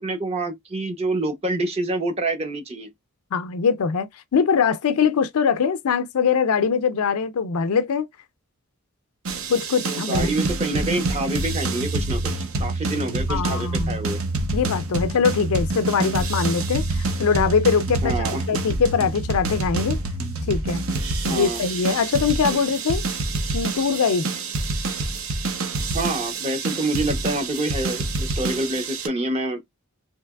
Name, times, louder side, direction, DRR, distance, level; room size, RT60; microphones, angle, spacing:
voice 1, 0.0-2.9 9.8-12.2 12.6-14.2 18.0-18.4 21.3-21.6 25.9-29.6, right 2 dB, 25° right, 0.6 m, -27 dB
voice 2, 3.3-8.1 9.5-10.4 13.3-14.0 14.5-20.0 20.5-20.8 21.2-23.1 23.5-24.3, left 6 dB, 75° left, 0.4 m, -22 dB
sound 1, 9.3-29.1, right 2 dB, 65° right, 0.7 m, -27 dB
3.2 x 2.8 x 2.2 m
head